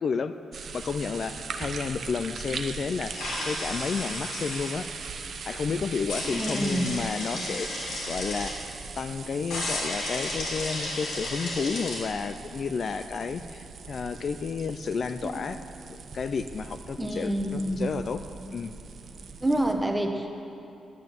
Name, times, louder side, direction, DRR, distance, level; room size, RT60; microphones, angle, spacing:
voice 1, 0.0-4.9 5.4-7.7 8.1-8.6 9.0-15.6 15.9-18.2 18.5-18.7, left 5 dB, 50° left, 10 dB, 0.4 m, -31 dB
sound 1, 0.5-19.7, right 5 dB, 55° right, 0.8 m, -40 dB
sound 2, 3.1-4.7 6.1-8.5 9.5-12.0, left 1 dB, 90° left, 3.4 m, -33 dB
voice 2, 6.3-6.9 15.2-15.3 17.0-17.9 19.4-20.4, right 1 dB, 10° right, 4 dB, 1.0 m, -27 dB
9.7 x 9.4 x 7.5 m, 2.8 s
wide cardioid pair, 130°, 0 cm